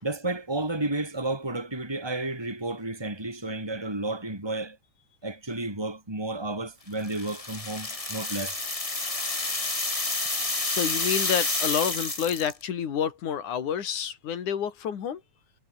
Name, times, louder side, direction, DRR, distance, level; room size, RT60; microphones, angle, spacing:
voice 1, 0.0-4.8 5.2-8.6, right 2 dB, 5° right, 4.8 m, -32 dB
sound 1, 7.0-12.6, left 2 dB, 15° left, 1.3 m, -29 dB
voice 2, 10.6-15.2, left 8 dB, 75° left, 4.1 m, -29 dB
omnidirectional pair, 3.5 m